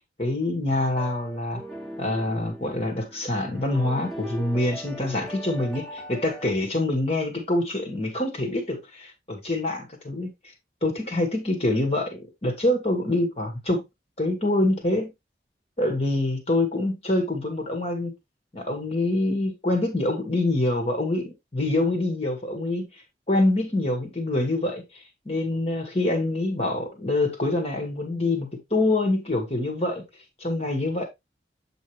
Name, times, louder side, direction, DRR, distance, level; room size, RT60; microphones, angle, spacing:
voice 1, 0.2-1.6 2.0-10.3 10.8-13.8 14.2-15.1 15.8-18.1 18.5-23.0 23.3-30.0 30.4-31.1, left 2 dB, 35° left, 1.7 m, -25 dB
sound 1, 0.8-6.5, equal, ahead, 2.4 m, -40 dB
8.0 x 5.2 x 3.2 m
head